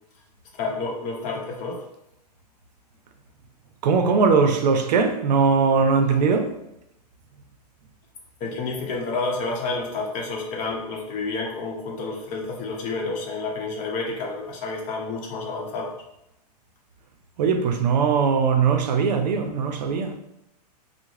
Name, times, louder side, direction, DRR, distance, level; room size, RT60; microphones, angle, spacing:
voice 1, 0.6-1.8 8.4-15.9, left 3 dB, 35° left, 0.8 m, -29 dB
voice 2, 3.8-6.5 17.4-20.2, right 5 dB, 80° right, 0.5 m, -20 dB
3.5 x 2.0 x 3.1 m
hypercardioid pair, 130°, 21 cm